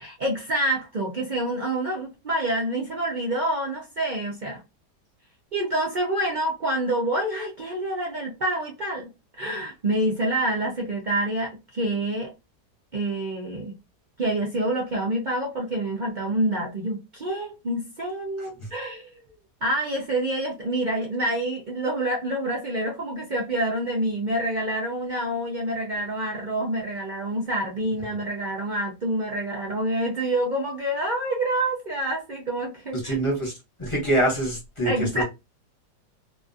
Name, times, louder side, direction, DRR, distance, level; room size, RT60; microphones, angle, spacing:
voice 1, 0.0-4.6 5.5-9.1 9.4-12.3 12.9-13.7 14.2-19.2 19.6-33.1 34.8-35.2, right 1 dB, 90° right, 0.4 m, -27 dB
voice 2, 18.4-18.7 32.9-33.5 33.8-35.2, right 1 dB, 20° left, 0.9 m, -25 dB
2.8 x 2.4 x 2.6 m
omnidirectional pair, 1.8 m